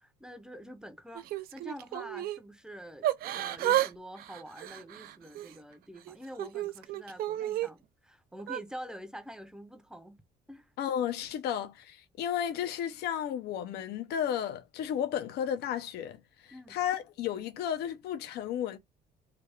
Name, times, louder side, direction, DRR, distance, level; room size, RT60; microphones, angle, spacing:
voice 1, 0.0-10.2 10.5-10.7 16.5-16.8, equal, 5° right, 0.6 m, -46 dB
Yell / Crying sobbing, 1.1-2.4 3.0-3.9 4.2-5.5 6.1-7.7 8.4-8.6, right 13 dB, 60° right, 0.4 m, -32 dB
voice 2, 10.8-18.8, left 9 dB, 75° left, 0.6 m, -33 dB
3.3 x 2.2 x 3.3 m
cardioid pair, 110°, 17 cm